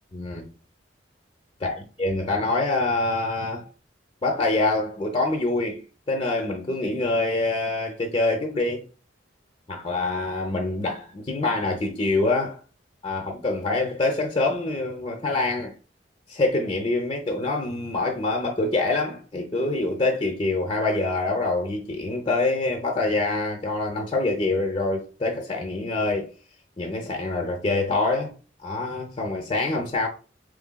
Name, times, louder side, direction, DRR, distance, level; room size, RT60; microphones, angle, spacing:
voice 1, 0.1-0.5 1.6-3.7 4.2-8.8 9.7-12.6 13.0-15.7 16.3-26.3 26.8-28.3 28.6-30.1, left 2 dB, 30° left, 0.6 m, -25 dB
5.0 x 3.2 x 2.2 m
head